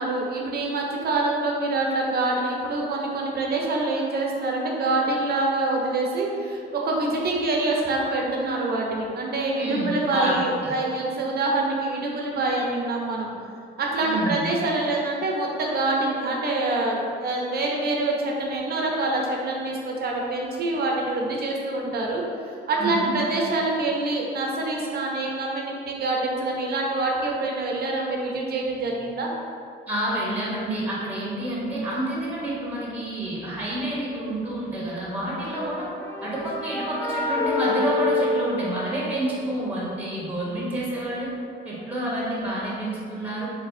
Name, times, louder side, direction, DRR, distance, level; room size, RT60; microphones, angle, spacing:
voice 1, 0.0-13.3 13.8-29.3, right 2 dB, 55° right, -1 dB, 0.7 m, -26 dB
voice 2, 9.6-10.7 14.0-14.4 22.8-23.1 29.9-35.9 36.2-41.3 41.6-43.5, right 1 dB, 10° right, -6 dB, 0.8 m, -28 dB
sound 1, 35.5-39.4, left 3 dB, 10° left, 0.5 m, -28 dB
4.1 x 2.2 x 2.6 m, 2.4 s
cardioid pair, 90°, 20 cm